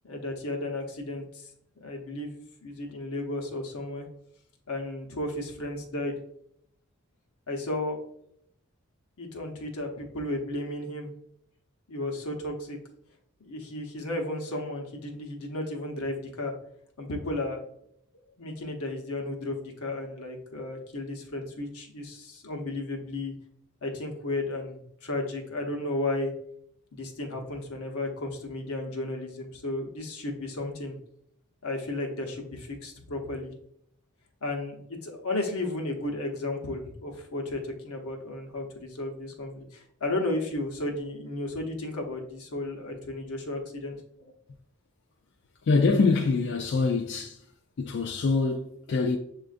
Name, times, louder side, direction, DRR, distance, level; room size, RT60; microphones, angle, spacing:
voice 1, 0.0-1.5 1.8-4.1 4.7-6.2 7.5-8.0 9.2-11.1 11.9-12.8 13.4-16.5 17.0-17.6 18.4-23.3 23.8-26.3 26.9-31.0 31.6-33.5 34.4-44.3, left 2 dB, 85° left, 0.9 m, -34 dB
voice 2, 45.6-47.4 47.8-49.2, left 4 dB, 55° left, 0.3 m, -24 dB
7.2 x 2.5 x 2.4 m
head